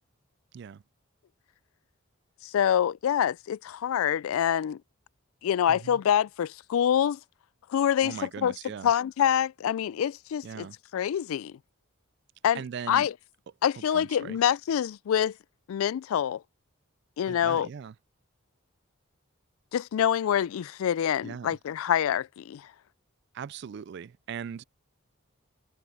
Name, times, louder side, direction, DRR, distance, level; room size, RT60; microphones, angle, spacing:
voice 1, 2.4-4.8 5.4-7.2 7.7-8.5 8.8-10.7 10.9-11.5 12.4-12.6 12.9-13.1 13.6-15.3 15.7-16.4 17.2-17.7 19.7-22.6, left 9 dB, 75° left, 0.3 m, -26 dB
voice 2, 5.7-6.0 8.0-8.9 10.4-10.8 12.5-13.1 13.8-14.4 17.2-17.9 21.2-21.6 23.3-24.6, right 7 dB, 50° right, 0.3 m, -39 dB
head